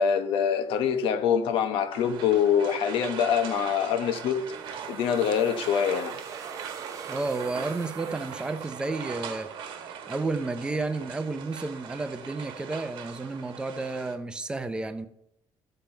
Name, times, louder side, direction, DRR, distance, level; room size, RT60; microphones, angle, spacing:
voice 1, 0.0-6.2, left 7 dB, 80° left, 1.1 m, -25 dB
sound 1, 1.9-14.2, right 7 dB, 60° right, 1.2 m, -40 dB
sound 2, 4.3-9.2, right 6 dB, 35° right, 0.9 m, -45 dB
voice 2, 7.1-9.5 10.1-15.1, right 3 dB, 10° right, 0.6 m, -31 dB
13.5 x 7.3 x 4.5 m
cardioid pair, 180°, 9 cm